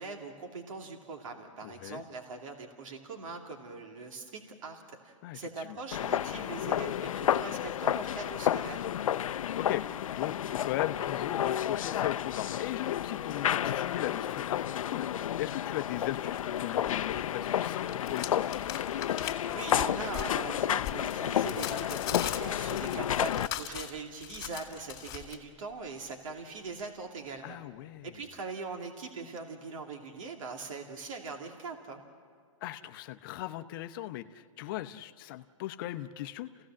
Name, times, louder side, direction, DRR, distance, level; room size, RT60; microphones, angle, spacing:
voice 1, 0.0-8.9 19.5-27.6 28.0-32.0, right 4 dB, 75° right, 2 dB, 2.6 m, -41 dB
voice 2, 1.6-2.0 5.2-5.8 9.6-9.8 10.1-18.5 27.4-28.1 32.6-36.5, left 15 dB, 40° left, 9 dB, 0.8 m, -38 dB
sound 1, 5.9-23.5, left 10 dB, 85° left, 0.5 m, -31 dB
sound 2, 16.4-17.2 17.5-25.4, left 12 dB, 25° left, 2.5 m, -40 dB
28.5 x 16.5 x 7.5 m, 2.1 s
hypercardioid pair, 150°, 17 cm